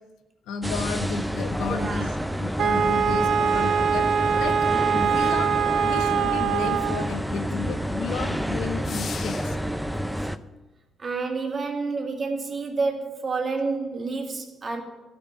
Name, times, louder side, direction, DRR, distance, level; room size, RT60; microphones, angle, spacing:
voice 1, 0.5-4.7 4.9-9.6, left 5 dB, 90° left, 8 dB, 1.1 m, -33 dB
sound 1, 0.6-10.4, equal, ahead, 0.5 m, -29 dB
voice 2, 1.7-2.2 7.3-7.4 10.0-10.3 11.0-14.8, right 4 dB, 40° right, 3 dB, 2.1 m, -29 dB
Wind instrument woodwind instrument, 2.6-7.1, right 7 dB, 75° right, 0.6 m, -23 dB
sound 2, 8.8-9.8, left 6 dB, 50° left, 0.5 m, -37 dB
12.5 x 6.0 x 9.0 m, 1.1 s
cardioid pair, 90°, 0 cm